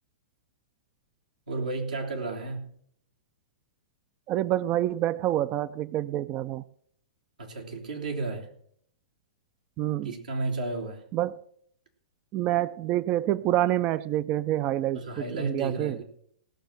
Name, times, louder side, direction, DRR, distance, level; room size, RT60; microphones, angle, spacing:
voice 1, 1.5-2.7 7.4-8.5 10.0-11.0 14.9-16.0, right 3 dB, 85° right, 3.1 m, -32 dB
voice 2, 4.3-6.6 9.8-10.1 11.1-11.4 12.3-16.0, right 13 dB, 35° right, 0.4 m, -27 dB
18.0 x 6.1 x 6.5 m
hypercardioid pair, 115°, 4 cm